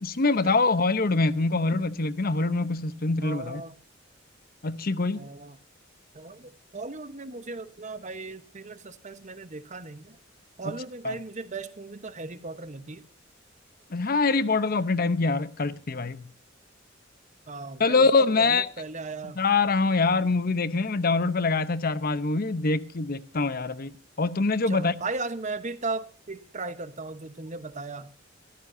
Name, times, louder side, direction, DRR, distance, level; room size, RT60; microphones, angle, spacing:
voice 1, 0.0-3.6 4.6-5.3 11.0-11.1 13.9-16.3 17.8-18.6 19.4-23.9 24.2-24.9, left 3 dB, 50° left, 0.8 m, -24 dB
voice 2, 3.2-3.8 5.1-5.6 6.1-10.2 10.6-13.1 17.5-18.1 18.4-19.4 24.7-28.1, right 3 dB, 40° right, 1.1 m, -37 dB
24.0 x 14.5 x 2.7 m
head